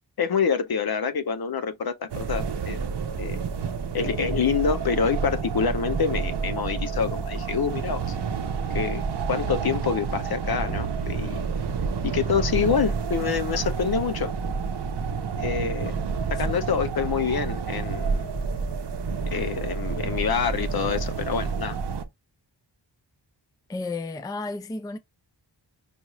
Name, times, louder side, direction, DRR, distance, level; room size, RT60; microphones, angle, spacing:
voice 1, 0.2-2.8 3.2-3.4 3.9-8.2 8.7-9.0 9.3-11.4 12.0-14.3 15.4-16.0 16.3-18.3 19.3-21.8, left 6 dB, 55° left, 0.6 m, -26 dB
sound 1, 2.1-22.0, right 5 dB, 65° right, 0.7 m, -29 dB
voice 2, 23.7-25.0, left 3 dB, 10° left, 0.4 m, -33 dB
5.1 x 2.4 x 2.9 m
wide cardioid pair, 90°, 44 cm